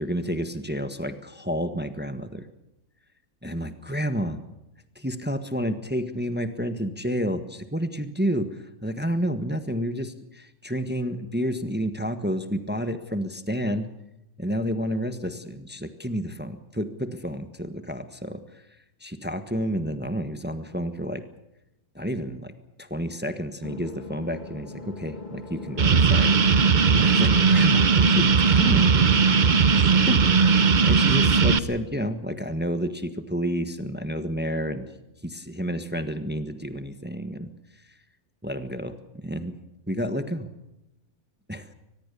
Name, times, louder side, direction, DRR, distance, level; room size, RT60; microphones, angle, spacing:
voice 1, 0.0-2.5 3.4-4.4 4.9-13.9 14.4-18.6 19.0-21.2 21.9-22.5 22.8-26.4 27.0-29.0 29.7-34.9 35.2-37.5 37.8-37.9 38.4-39.6 39.9-40.5 41.5-41.7, equal, 5° right, 9 dB, 1.4 m, -30 dB
sound 1, 23.6-30.9, left 3 dB, 30° left, 2.5 m, -40 dB
sound 2, 25.8-31.6, right 5 dB, 35° right, 0.9 m, -18 dB
23.5 x 20.5 x 6.9 m, 0.90 s
omnidirectional pair, 1.6 m